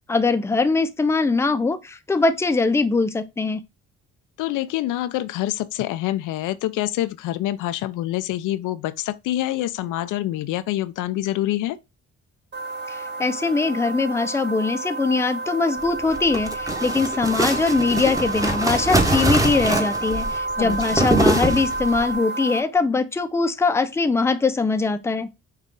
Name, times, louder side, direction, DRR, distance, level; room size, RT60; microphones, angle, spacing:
voice 1, 0.1-3.6 12.9-25.3, left 3 dB, 10° left, 0.4 m, -22 dB
voice 2, 4.4-11.8 20.6-21.0, left 14 dB, 85° left, 0.5 m, -26 dB
sound 1, 12.5-22.6, right 2 dB, 35° right, 1.1 m, -30 dB
sound 2, 16.0-22.1, right 1 dB, 10° right, 0.9 m, -23 dB
5.7 x 2.3 x 3.7 m
cardioid pair, 90°, 30 cm